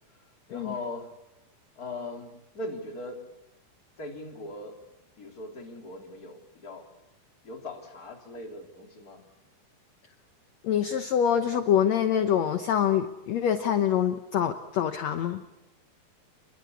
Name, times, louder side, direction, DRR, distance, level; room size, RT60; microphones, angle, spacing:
voice 1, 0.1-1.1 1.8-3.3 4.0-4.8 5.2-6.9 7.4-9.3, left 2 dB, 25° left, 3.7 m, -40 dB
voice 2, 10.6-15.4, left 9 dB, 65° left, 1.7 m, -25 dB
28.5 x 22.5 x 8.5 m
omnidirectional pair, 4.4 m